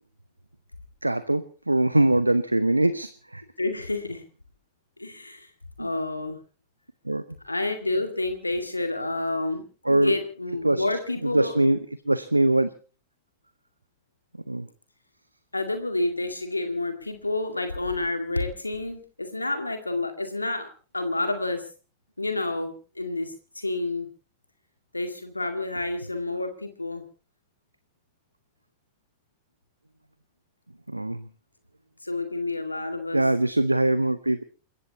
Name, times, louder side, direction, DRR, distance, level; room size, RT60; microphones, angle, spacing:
voice 1, 1.0-3.4 5.8-5.9 7.0-7.2 9.8-10.2 10.6-10.8 11.2-11.8 12.1-12.7 14.5-14.7 30.9-31.2 33.1-34.4, right 1 dB, 85° right, 14 dB, 0.7 m, -22 dB
voice 2, 3.6-4.2 5.0-5.5 5.8-6.4 7.4-9.6 9.9-11.6 15.5-20.7 20.9-21.6 22.2-24.1 24.9-27.0 32.0-33.3, left 2 dB, 85° left, 6 dB, 2.1 m, -29 dB
28.5 x 15.0 x 2.9 m, 0.38 s
figure-of-eight pair, 90°, 0 cm